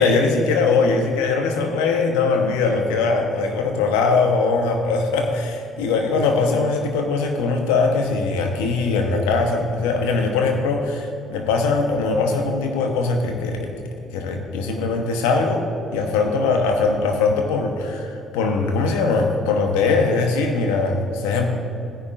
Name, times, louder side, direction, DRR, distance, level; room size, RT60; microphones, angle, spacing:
voice 1, 0.0-13.7 14.1-15.6 15.9-21.5, left 4 dB, 80° left, 4 dB, 1.0 m, -21 dB
15.5 x 10.0 x 2.6 m, 2.9 s
hypercardioid pair, 50°, 0 cm